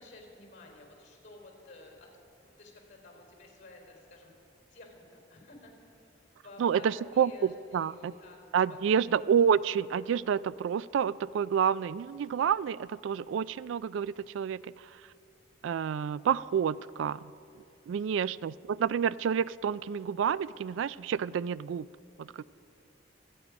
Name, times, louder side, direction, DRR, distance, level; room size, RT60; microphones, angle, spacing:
voice 1, 0.0-2.1 2.4-4.3 4.7-6.0 6.4-8.4 8.7-9.5 18.1-18.4, left 2 dB, 40° left, 1 dB, 4.2 m, -52 dB
voice 2, 6.6-8.1 8.5-14.6 15.6-17.3 17.9-21.9 22.2-22.4, right 7 dB, 80° right, 19 dB, 0.3 m, -29 dB
27.0 x 9.5 x 5.2 m, 2.6 s
head